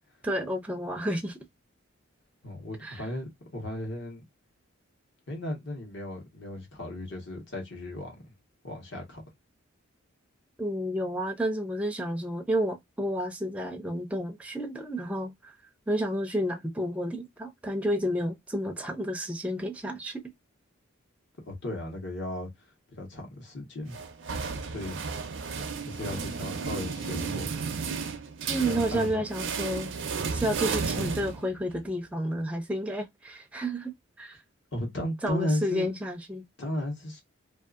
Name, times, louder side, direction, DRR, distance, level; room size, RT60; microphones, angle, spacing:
voice 1, 0.2-1.4 2.8-3.0 10.6-15.3 15.9-20.2 28.4-29.9 30.3-33.9 34.2-34.4 35.2-36.4, equal, 5° right, 0.5 m, -30 dB
voice 2, 2.4-4.2 5.3-8.3 8.6-9.3 21.4-22.5 22.9-24.0 24.6-25.1 25.8-27.5 28.7-29.2 34.7-36.0 36.6-37.2, left 1 dB, 60° left, 1.2 m, -35 dB
sound 1, 23.9-31.8, right 5 dB, 60° right, 0.5 m, -33 dB
2.6 x 2.5 x 2.4 m
head